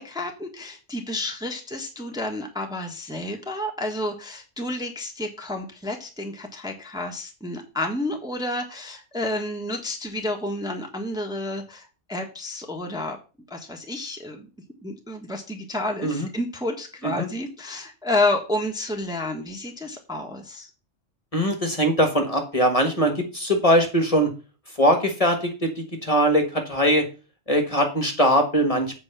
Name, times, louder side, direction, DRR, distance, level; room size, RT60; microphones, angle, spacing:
voice 1, 0.0-13.2 13.5-14.5 14.8-20.7, left 1 dB, 5° right, 2 dB, 1.3 m, -30 dB
voice 2, 21.3-24.3 24.8-27.0 27.5-29.0, equal, 30° left, 4 dB, 1.5 m, -21 dB
8.2 x 4.6 x 6.8 m, 0.34 s
omnidirectional pair, 1.3 m